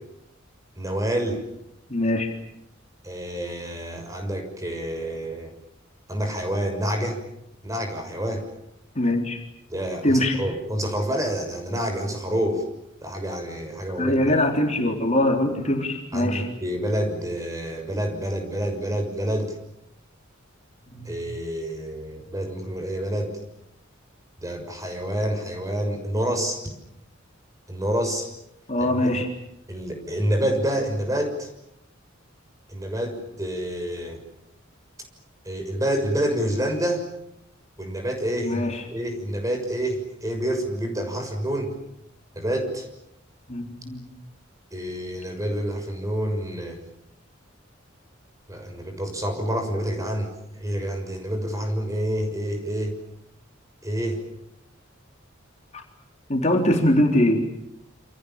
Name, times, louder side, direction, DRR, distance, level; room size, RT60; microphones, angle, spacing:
voice 1, 0.8-1.4 3.0-5.5 6.1-7.2 7.6-8.4 9.7-12.6 13.0-14.2 16.1-19.5 21.0-23.4 24.4-26.6 27.7-28.3 28.8-28.9 29.7-31.5 32.7-34.2 35.4-37.0 37.8-41.7 42.3-42.9 44.7-46.8 48.5-52.9 53.8-54.2, equal, 15° right, 5 dB, 6.4 m, -28 dB
voice 2, 1.9-2.3 9.0-9.4 10.0-10.4 14.0-16.5 20.9-21.1 28.7-29.3 38.4-38.8 43.5-44.0 55.7-55.8 56.3-57.4, left 1 dB, 35° left, 2 dB, 3.7 m, -22 dB
29.0 x 27.5 x 7.4 m, 0.81 s
head